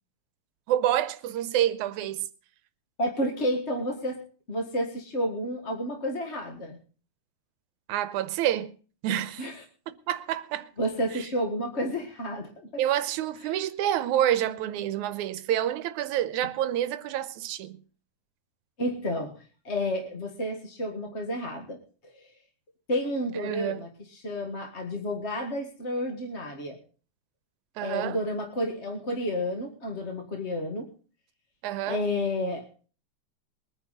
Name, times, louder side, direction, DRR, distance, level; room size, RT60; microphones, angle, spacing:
voice 1, 0.7-2.2 7.9-8.7 9.0-9.5 10.1-10.7 11.2-11.3 12.8-17.8 23.4-23.8 27.8-28.2 31.6-32.0, right 11 dB, 85° right, 2.2 m, -28 dB
voice 2, 3.0-4.2 4.5-6.8 9.4-9.5 10.8-12.8 18.8-21.8 22.1-22.2 22.9-26.8 27.8-30.9 31.8-32.6, left 1 dB, 30° left, 1.5 m, -31 dB
22.0 x 10.0 x 4.1 m
omnidirectional pair, 3.4 m